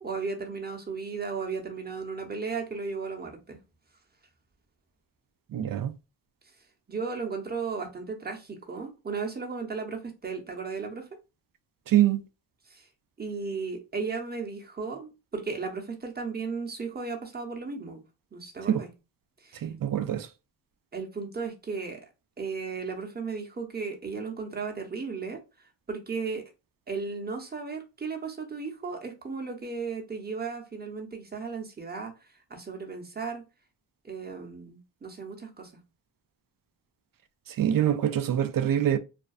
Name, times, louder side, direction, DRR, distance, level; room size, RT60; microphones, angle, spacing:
voice 1, 0.0-3.6 6.9-11.1 12.7-12.9 13.2-18.0 18.3-18.9 19.4-19.7 20.9-22.0 22.4-26.4 26.9-33.4 34.0-35.7, right 4 dB, 20° right, 0.8 m, -35 dB
voice 2, 5.5-5.9 11.9-12.2 18.7-18.8 19.6-20.3 37.6-39.0, right 11 dB, 50° right, 0.4 m, -24 dB
2.5 x 2.2 x 2.4 m
cardioid pair, 45°, 45 cm